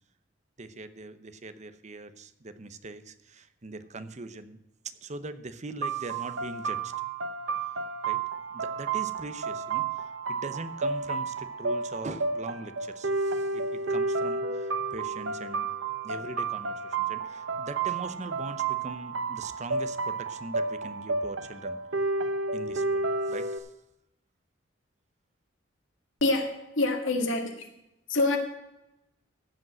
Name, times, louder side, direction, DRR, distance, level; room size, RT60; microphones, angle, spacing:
voice 1, 0.6-4.6 4.8-6.9 8.1-8.2 8.5-15.7 16.0-21.8 22.5-23.7, right 3 dB, 40° right, 11 dB, 0.8 m, -41 dB
sound 1, 5.8-23.6, right 4 dB, 85° right, 1.1 m, -31 dB
voice 2, 26.2-27.7 28.1-28.4, left 2 dB, 85° left, 4 dB, 2.1 m, -26 dB
15.5 x 5.3 x 7.6 m, 0.89 s
head